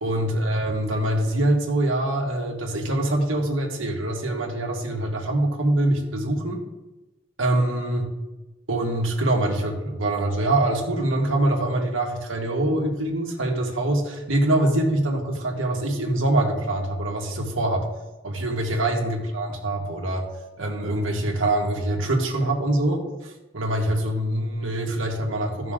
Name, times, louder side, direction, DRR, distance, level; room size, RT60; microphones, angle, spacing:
voice 1, 0.0-6.6 7.4-8.0 8.7-17.8 18.2-20.2 20.6-23.0 23.5-25.7, right 1 dB, 80° right, 0 dB, 1.8 m, -24 dB
14.5 x 6.0 x 3.8 m, 1.1 s
head